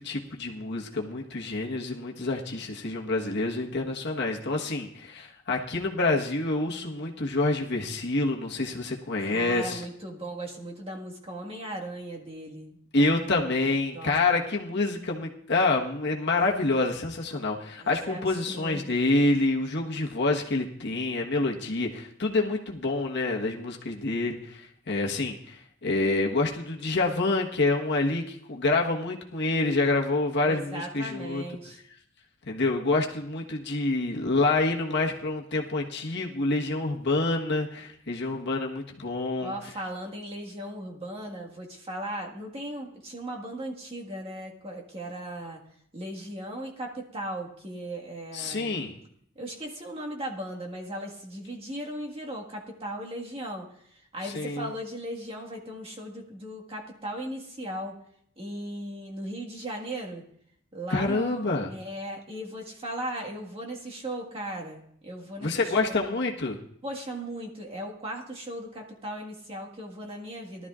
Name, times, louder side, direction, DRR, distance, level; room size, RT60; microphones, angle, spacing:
voice 1, 0.0-9.8 12.9-31.4 32.5-39.5 48.3-48.9 54.3-54.7 60.9-61.7 65.4-66.6, left 2 dB, 60° left, 0 dB, 1.3 m, -27 dB
voice 2, 9.2-13.4 13.9-14.2 17.8-19.0 30.4-31.8 39.4-45.6 45.9-48.8 49.3-57.9 58.4-60.2 60.7-66.2 66.8-70.7, right 1 dB, 30° right, -1 dB, 1.7 m, -37 dB
18.5 x 12.5 x 2.5 m, 0.68 s
head